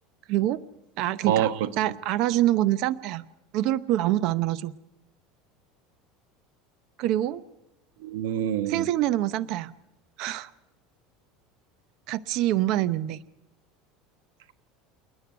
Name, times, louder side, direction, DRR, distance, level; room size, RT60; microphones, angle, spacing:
voice 1, 0.3-0.6 1.0-3.2 3.5-4.7 7.0-7.4 8.7-9.7 10.2-10.5 12.1-13.2, right 14 dB, 55° right, 16 dB, 0.7 m, -25 dB
voice 2, 1.2-1.9 8.0-8.9, right 10 dB, 90° right, 12 dB, 1.1 m, -26 dB
29.0 x 9.9 x 9.4 m, 0.92 s
supercardioid pair, 145°, 0 cm